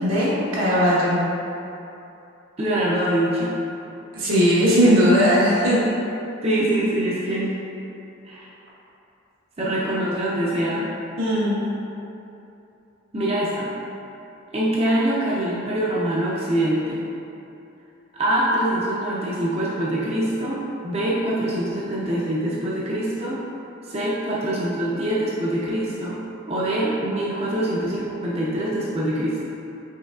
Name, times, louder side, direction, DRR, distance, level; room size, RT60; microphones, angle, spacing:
voice 1, 0.0-1.2 4.1-5.8 11.2-11.6, equal, 85° right, -8 dB, 1.2 m, -18 dB
voice 2, 2.6-3.5 6.4-7.6 8.2-8.5 9.6-10.8 13.1-13.7 14.5-17.0 18.1-23.4 23.8-26.2 26.5-29.4, right 1 dB, 30° right, -6 dB, 0.5 m, -24 dB
5.4 x 3.3 x 2.3 m, 2.8 s
head